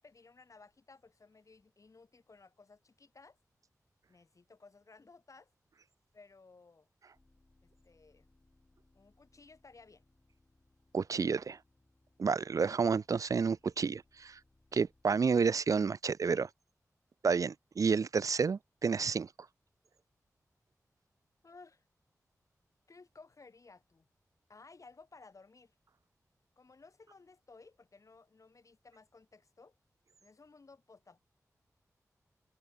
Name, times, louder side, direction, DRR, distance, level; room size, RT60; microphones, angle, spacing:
voice 1, 0.0-3.4 4.1-5.5 6.1-6.9 7.6-8.3 8.9-10.0 21.4-21.8 22.9-24.1 24.5-25.7 26.6-29.8 30.2-31.2, left 4 dB, 60° left, 6.9 m, -58 dB
sound 1, 7.1-15.0, left 2 dB, 35° left, 7.0 m, -71 dB
voice 2, 10.9-11.6 12.2-14.4 14.7-16.5 17.2-19.3, right 5 dB, 65° right, 0.4 m, -30 dB
cardioid pair, 50°, 6 cm